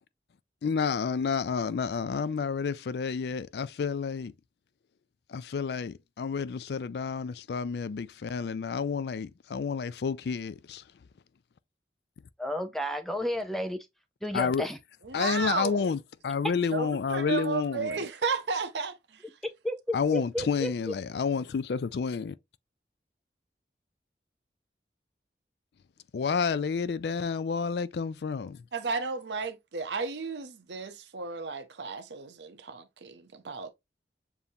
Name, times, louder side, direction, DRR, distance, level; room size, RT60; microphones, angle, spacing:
voice 1, 0.6-4.3 5.3-10.8 14.3-14.7 15.1-18.0 19.9-22.4 26.1-28.6, left 5 dB, 70° left, 0.4 m, -30 dB
voice 2, 12.4-13.8 14.2-14.8 19.6-20.7, equal, ahead, 0.5 m, -32 dB
voice 3, 15.0-15.9 16.7-19.2 28.7-33.7, right 5 dB, 85° right, 0.7 m, -33 dB
7.0 x 2.7 x 2.7 m
head